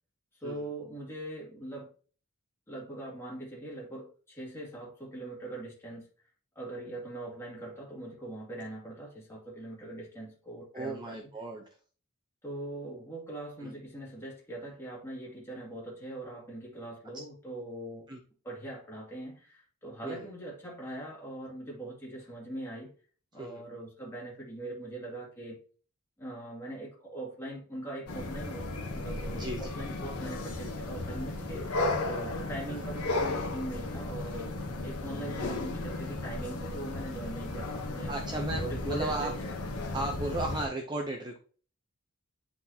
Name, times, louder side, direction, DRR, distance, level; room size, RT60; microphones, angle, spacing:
voice 1, 0.3-1.9 2.7-6.1 6.6-11.2 12.4-18.1 18.4-22.9 23.3-25.6 26.2-34.5 34.8-38.1 38.5-39.3 39.8-40.1, right 1 dB, 10° left, 2.2 m, -41 dB
voice 2, 10.7-11.6 13.6-13.7 18.1-18.2 20.0-20.3 23.4-23.6 29.3-29.7 32.7-32.9 38.1-39.3 39.9-41.4, right 2 dB, 20° right, 0.7 m, -35 dB
sound 1, 28.1-40.7, left 2 dB, 85° left, 1.1 m, -35 dB
9.8 x 4.0 x 2.8 m
head